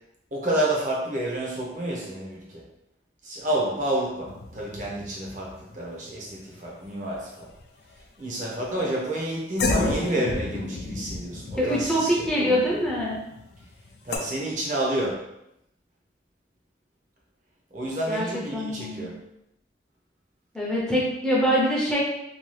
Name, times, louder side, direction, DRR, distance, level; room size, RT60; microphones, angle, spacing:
voice 1, 0.3-2.6 3.2-7.5 8.2-12.1 12.4-12.6 14.0-15.2 17.7-19.2, right 1 dB, 45° right, -3 dB, 0.7 m, -29 dB
sound 1, 4.3-7.1 7.4-8.0 8.6-8.8 9.6-14.2, left 3 dB, 60° left, 0.4 m, -32 dB
voice 2, 11.6-13.2 18.1-18.3 18.5-19.1 20.5-22.0, equal, 5° left, -6 dB, 0.5 m, -24 dB
2.7 x 2.3 x 3.1 m, 0.84 s
head